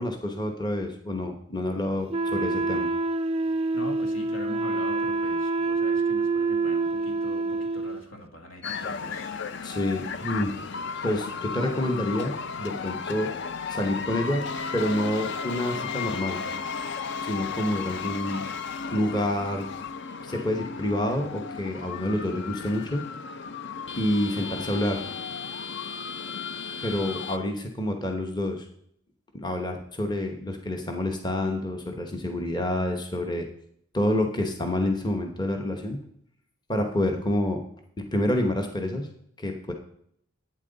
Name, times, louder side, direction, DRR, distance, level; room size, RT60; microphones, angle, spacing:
voice 1, 0.0-2.9 9.6-10.7 11.0-13.3 13.7-16.4 17.2-18.5 18.9-19.7 20.2-23.1 24.0-25.1 26.8-28.6 29.3-33.5 33.9-36.0 36.7-37.6 38.0-39.1 39.4-39.7, left 1 dB, 20° left, 3 dB, 1.1 m, -28 dB
Wind instrument woodwind instrument, 2.1-8.0, right 3 dB, 30° right, 0.3 m, -26 dB
voice 2, 3.7-9.4, left 1 dB, 70° left, 4 dB, 1.7 m, -42 dB
sound 1, 8.6-27.4, left 5 dB, 55° left, 0.5 m, -34 dB
11.5 x 8.7 x 4.0 m, 0.67 s
head